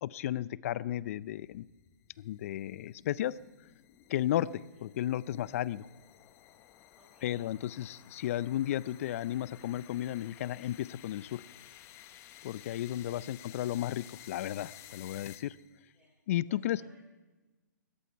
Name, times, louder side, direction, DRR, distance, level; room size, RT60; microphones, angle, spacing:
voice 1, 0.0-1.7 2.2-3.3 4.1-5.9 7.2-11.4 12.4-15.6 16.3-16.8, left 12 dB, 50° left, 20 dB, 0.5 m, -34 dB
sound 1, 1.0-15.8, left 13 dB, 25° left, 0.9 m, -55 dB
voice 2, 7.0-7.4 7.8-7.9 11.4-11.6 12.7-13.0 13.4-13.6 15.9-16.1 16.5-17.0, right 1 dB, 15° right, -5 dB, 4.4 m, -64 dB
19.0 x 14.0 x 4.6 m, 1.2 s
hypercardioid pair, 135°, 10 cm